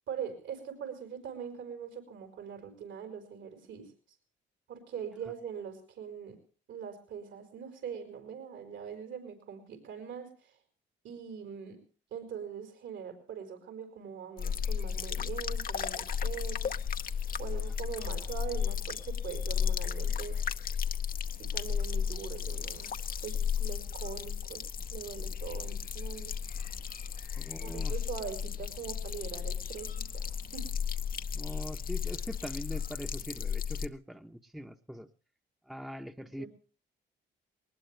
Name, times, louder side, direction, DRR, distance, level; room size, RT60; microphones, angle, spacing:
voice 1, 0.1-3.9 4.7-6.4 6.7-10.5 11.0-11.8 12.1-16.8 17.4-20.4 21.5-22.9 23.2-24.6 24.9-26.4 27.6-30.7 36.2-36.5, right 7 dB, 75° right, 6 dB, 4.9 m, -42 dB
sound 1, 14.4-33.9, left 7 dB, 45° left, 0.8 m, -34 dB
voice 2, 27.3-27.9 31.3-35.1 35.7-36.5, equal, ahead, 7 dB, 1.0 m, -42 dB
20.5 x 19.5 x 3.3 m, 0.38 s
cardioid pair, 90°, 20 cm